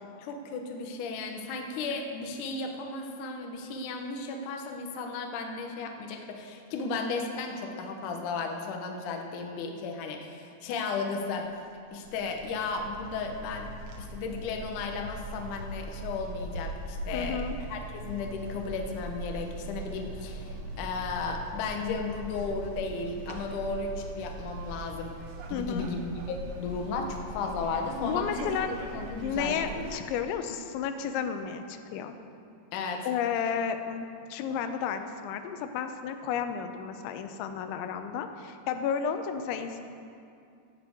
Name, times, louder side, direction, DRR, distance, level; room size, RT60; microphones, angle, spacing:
voice 1, 0.2-11.5 11.9-13.7 14.0-17.4 17.7-25.1 25.5-26.0 26.3-29.9 32.7-33.1, left 4 dB, 70° left, 2 dB, 1.9 m, -34 dB
sound 1, 11.3-11.4 12.0-30.0, right 1 dB, 85° right, 1.7 m, -41 dB
voice 2, 17.1-17.6 25.5-25.9 28.0-28.7 29.2-32.1 33.0-39.8, left 7 dB, 90° left, 8 dB, 3.1 m, -32 dB
17.0 x 6.0 x 7.7 m, 2.5 s
omnidirectional pair, 5.2 m